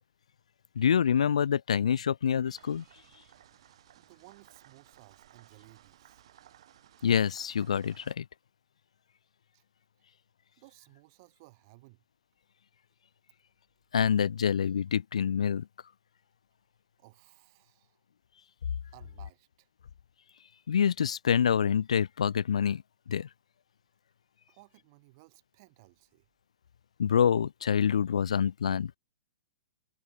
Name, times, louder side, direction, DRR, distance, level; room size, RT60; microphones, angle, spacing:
voice 1, 0.8-2.8 7.0-8.2 13.9-15.6 20.7-22.8 23.1-23.3 27.0-29.0, left 8 dB, 90° left, 0.4 m, -26 dB
sound 1, 2.6-8.1, right 12 dB, 60° right, 2.8 m, -59 dB
voice 2, 4.0-6.2 9.5-9.6 10.6-12.0 17.0-18.0 18.9-19.7 24.5-26.3, right 24 dB, 40° right, 4.3 m, -58 dB
hypercardioid pair, 150°, 3 cm